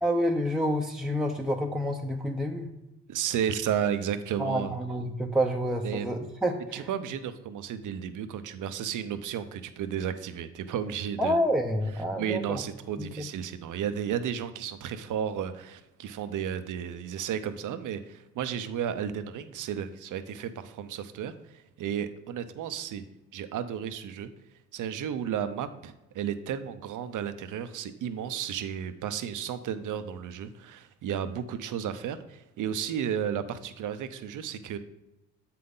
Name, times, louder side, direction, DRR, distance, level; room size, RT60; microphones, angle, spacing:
voice 1, 0.0-2.7 4.4-6.8 11.2-12.6 13.0-13.3, equal, ahead, 1 dB, 0.7 m, -28 dB
voice 2, 3.1-4.8 5.8-6.1 6.7-11.4 12.2-23.0 23.3-24.3 24.7-34.8, right 8 dB, 65° right, 11 dB, 0.7 m, -33 dB
7.5 x 5.8 x 3.8 m, 0.95 s
supercardioid pair, 60°, 33 cm